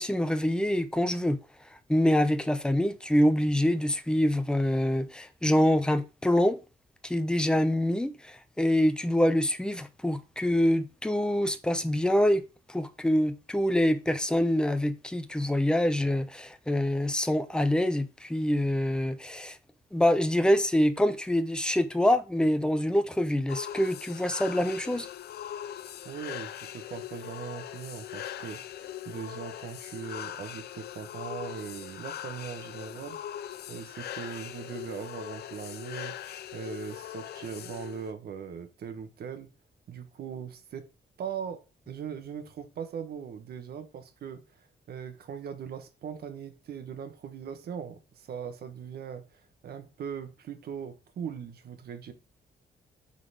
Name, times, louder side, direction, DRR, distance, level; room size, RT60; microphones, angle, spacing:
voice 1, 0.0-1.4 1.9-6.6 7.0-12.4 12.7-19.6 19.9-25.1, left 1 dB, 5° left, 0.7 m, -25 dB
sound 1, 23.5-38.1, left 11 dB, 80° left, 0.6 m, -41 dB
voice 2, 26.0-33.2 33.7-36.2 36.5-39.5 39.9-40.9 41.2-44.6 44.9-52.1, right 7 dB, 75° right, 1.3 m, -40 dB
8.4 x 4.1 x 5.1 m
wide cardioid pair, 160°, 16 cm